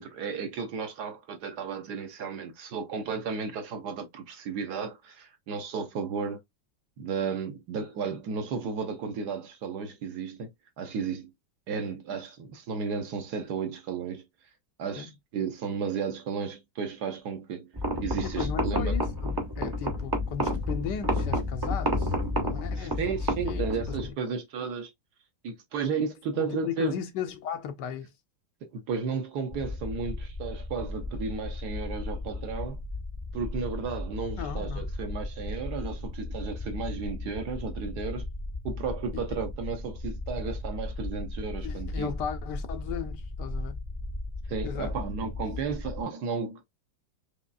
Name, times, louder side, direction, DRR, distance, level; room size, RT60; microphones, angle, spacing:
voice 1, 0.0-6.4 7.0-10.5 10.8-11.3 11.7-14.2 14.8-17.7 18.0-19.0 22.8-24.9 25.4-27.0 28.6-32.8 33.3-38.3 38.6-42.1 44.5-46.6, right 5 dB, 65° right, 1.3 m, -33 dB
sound 1, 17.7-24.1, left 1 dB, 30° right, 0.4 m, -29 dB
voice 2, 18.2-23.2 23.4-24.1 26.3-28.1 34.4-34.9 39.1-39.2 41.6-43.8 44.6-44.9, left 8 dB, 70° left, 1.2 m, -36 dB
sound 2, 29.5-46.0, left 2 dB, 45° left, 0.4 m, -36 dB
5.2 x 3.1 x 2.3 m
omnidirectional pair, 2.1 m